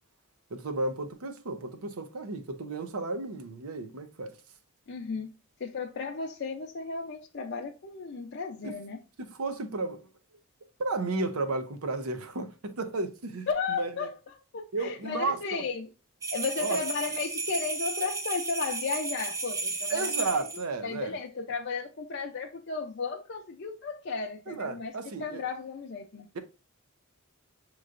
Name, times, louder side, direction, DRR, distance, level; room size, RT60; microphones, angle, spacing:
voice 1, 0.5-4.4 8.6-8.8 9.2-10.0 10.8-13.5 13.8-14.1 14.7-15.6 16.6-16.8 19.9-21.2 24.5-25.4 26.3-26.4, right 3 dB, 85° right, 0.7 m, -33 dB
voice 2, 4.9-5.3 5.6-9.0 13.5-14.1 14.5-15.9 16.3-20.5 20.8-26.3, left 5 dB, 50° left, 0.5 m, -34 dB
sound 1, 16.2-20.6, right 3 dB, 15° right, 0.4 m, -33 dB
6.3 x 3.0 x 2.4 m
head